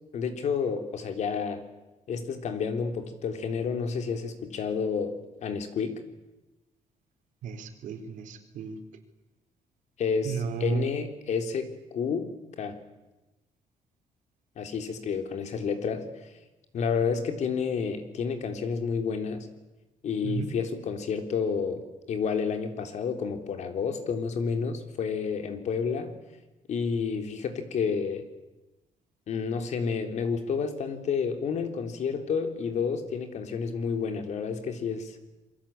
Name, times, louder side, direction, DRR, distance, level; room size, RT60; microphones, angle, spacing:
voice 1, 0.1-1.6 2.1-5.1 5.4-6.0 10.0-12.3 12.6-12.8 14.6-16.1 16.7-19.5 20.0-21.8 22.1-26.1 26.7-28.2 29.3-35.2, left 6 dB, 60° left, 6 dB, 3.6 m, -30 dB
voice 2, 7.4-8.8 10.2-10.8 20.2-20.5, right 5 dB, 80° right, 6 dB, 4.1 m, -33 dB
27.5 x 23.0 x 8.9 m, 1.1 s
cardioid pair, 125°, 13 cm